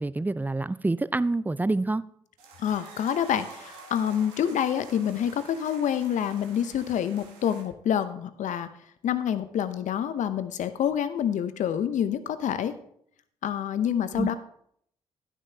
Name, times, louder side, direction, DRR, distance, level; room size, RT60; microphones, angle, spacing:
voice 1, 0.0-2.0 14.2-14.4, right 2 dB, 10° right, 0.4 m, -27 dB
sound 1, 2.4-7.6, right 4 dB, 80° right, 1.3 m, -48 dB
voice 2, 2.6-8.7 9.0-12.8 13.4-14.4, left 9 dB, 60° left, 0.8 m, -27 dB
11.0 x 9.8 x 2.8 m
hypercardioid pair, 40°, 14 cm